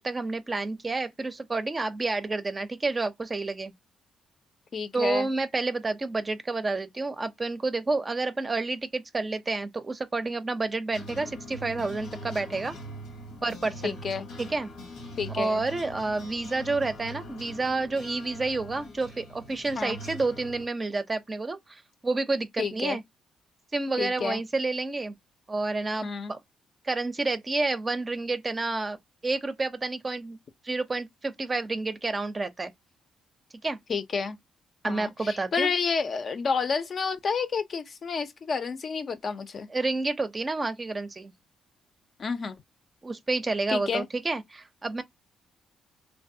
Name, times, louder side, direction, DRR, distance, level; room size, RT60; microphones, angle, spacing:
voice 1, 0.0-3.7 4.9-12.8 13.4-14.0 14.4-14.7 15.4-23.0 23.7-25.2 25.5-26.4 26.8-29.0 29.2-30.4 30.6-32.7 33.6-33.8 34.8-35.7 39.7-41.3 43.0-45.0, right 3 dB, 25° right, 0.5 m, -29 dB
voice 2, 4.7-5.3 13.8-14.3 15.2-15.6 19.8-20.0 22.6-23.0 24.0-24.4 26.0-26.3 33.9-34.4 34.8-39.7 42.2-42.6 43.7-44.1, left 5 dB, 45° left, 0.5 m, -30 dB
sound 1, 10.9-20.7, equal, 90° left, 1.0 m, -42 dB
3.2 x 2.2 x 2.7 m
cardioid pair, 90°, 0 cm